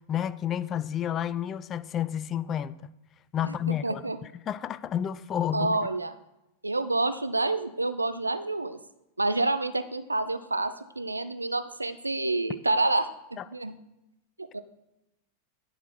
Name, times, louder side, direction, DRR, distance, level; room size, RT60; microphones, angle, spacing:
voice 1, 0.0-2.8 3.3-4.0 4.5-5.8 13.4-13.5, left 10 dB, 30° left, 0.3 m, -30 dB
voice 2, 3.8-4.2 5.5-6.1 6.6-8.8 9.2-13.1 13.5-13.7 14.4-14.6, right 2 dB, 80° right, 0.4 m, -28 dB
10.5 x 4.1 x 4.3 m
figure-of-eight pair, 90°, 0 cm